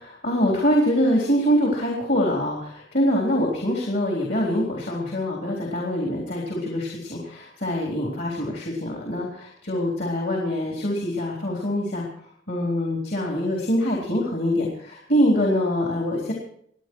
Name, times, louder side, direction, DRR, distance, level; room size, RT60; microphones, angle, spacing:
voice 1, 0.0-12.0 12.5-16.3, equal, 65° left, -1 dB, 3.8 m, -24 dB
26.5 x 9.6 x 4.7 m, 0.66 s
head